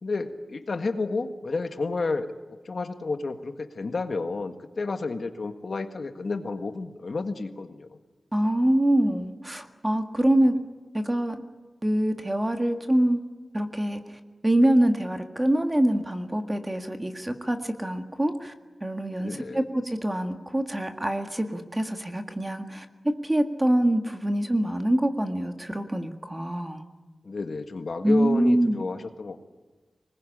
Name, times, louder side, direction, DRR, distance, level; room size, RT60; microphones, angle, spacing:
voice 1, 0.0-2.3 2.7-8.0 19.2-19.6 27.2-29.4, left 3 dB, 55° left, 7 dB, 1.7 m, -31 dB
voice 2, 8.3-10.6 10.9-11.4 11.8-13.2 13.5-18.5 18.8-26.8 28.0-28.8, right 1 dB, 15° right, 6 dB, 1.8 m, -25 dB
25.5 x 20.5 x 9.9 m, 1.3 s
wide cardioid pair, 125°, 0 cm